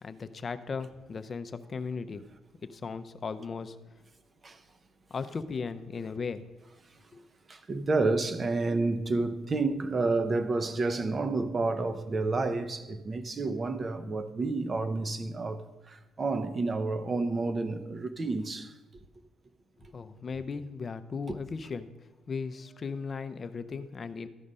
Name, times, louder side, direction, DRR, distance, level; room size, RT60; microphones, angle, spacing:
voice 1, 0.0-2.2 2.6-3.8 5.1-6.4 7.1-7.2 19.9-21.9 22.3-24.3, left 5 dB, 40° left, 0.6 m, -37 dB
voice 2, 7.5-18.7, right 3 dB, 35° right, 0.7 m, -30 dB
13.0 x 5.0 x 5.5 m
cardioid pair, 110°, 0 cm